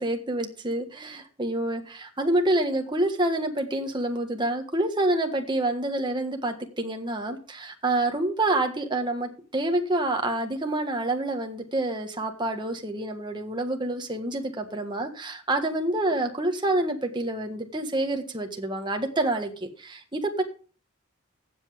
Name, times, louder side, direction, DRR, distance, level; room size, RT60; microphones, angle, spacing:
voice 1, 0.0-20.4, right 2 dB, 20° right, 4 dB, 1.5 m, -27 dB
15.5 x 7.7 x 3.5 m, 0.39 s
head